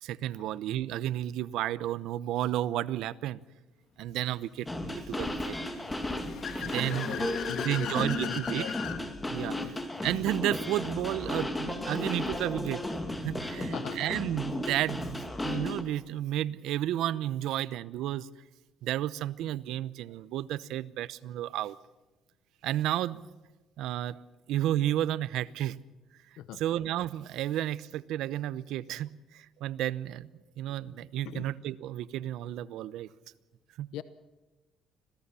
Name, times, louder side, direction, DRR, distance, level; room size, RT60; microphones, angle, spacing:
voice 1, 0.0-3.4 4.0-5.5 6.6-7.3 7.6-8.6 9.3-9.8 10.0-12.8 13.2-18.3 18.8-21.8 22.6-23.2 23.8-24.2 24.5-25.8 26.6-30.3 30.6-33.1 33.8-33.9, right 13 dB, 80° right, 16 dB, 0.8 m, -32 dB
sound 1, 4.7-15.8, left 1 dB, 10° left, 2.4 m, -34 dB
Car / Accelerating revving vroom, 5.8-9.0, left 8 dB, 60° left, 2.2 m, -39 dB
voice 2, 6.9-8.7 9.6-9.7 13.6-14.1 26.4-26.6 31.2-31.5 33.9-34.0, left 11 dB, 85° left, 13 dB, 0.8 m, -40 dB
26.0 x 17.5 x 7.0 m, 1.1 s
cardioid pair, 135°, 0 cm